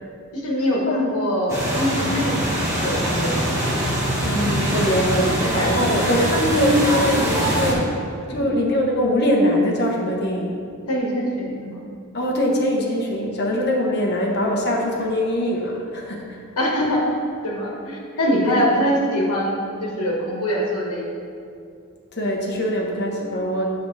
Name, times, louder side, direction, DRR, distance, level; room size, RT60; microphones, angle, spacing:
voice 1, 0.3-2.4 2.8-3.4 4.7-5.7 8.3-8.5 10.9-11.8 16.6-17.0 17.4-21.1, equal, 80° left, -2 dB, 1.5 m, -23 dB
sound 1, 1.5-7.7, equal, 15° right, 1.4 m, -23 dB
voice 2, 4.2-8.0 8.3-10.6 12.1-16.4 18.4-18.9 22.1-23.7, equal, 50° left, -1 dB, 1.0 m, -22 dB
7.7 x 6.3 x 3.3 m, 2.4 s
head